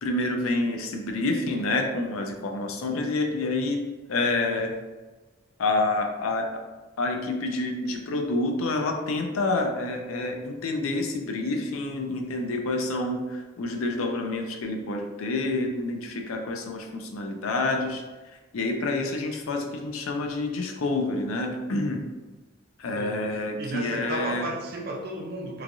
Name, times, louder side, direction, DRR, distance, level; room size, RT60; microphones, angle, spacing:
voice 1, 0.0-3.8 4.1-4.7 5.6-6.5 7.0-18.0 18.5-22.0 22.8-24.5, left 2 dB, 85° left, 3 dB, 0.5 m, -28 dB
voice 2, 22.9-25.6, right 1 dB, 50° right, 0 dB, 0.5 m, -34 dB
3.1 x 2.3 x 2.5 m, 1.2 s
head